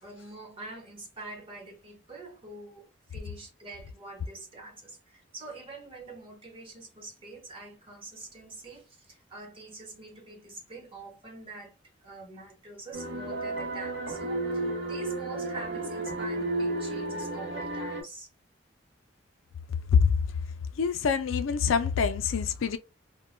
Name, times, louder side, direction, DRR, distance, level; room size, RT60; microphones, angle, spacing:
voice 1, 0.0-18.3, right 2 dB, 25° right, 0.9 m, -45 dB
sound 1, 12.9-18.0, right 2 dB, 70° right, 0.8 m, -32 dB
voice 2, 20.8-22.8, left 6 dB, 90° left, 0.4 m, -25 dB
2.2 x 2.1 x 3.2 m
head